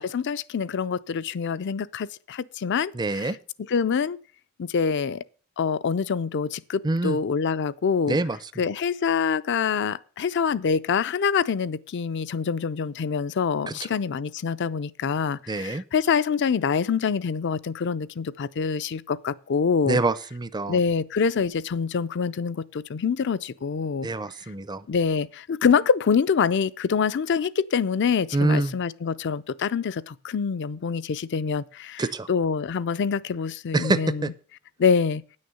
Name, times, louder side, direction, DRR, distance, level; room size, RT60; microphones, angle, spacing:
voice 1, 0.0-3.3 3.7-4.2 4.6-5.2 5.6-8.2 8.6-20.0 20.7-24.1 24.9-32.0 32.3-34.3 34.8-35.2, left 6 dB, 55° left, 0.4 m, -25 dB
voice 2, 2.9-3.4 6.8-7.2 8.1-8.6 13.7-13.8 15.5-15.8 19.9-20.8 24.0-24.9 28.3-28.7 32.0-32.3 33.7-34.3, right 2 dB, 20° right, 0.5 m, -26 dB
9.4 x 6.5 x 6.9 m
head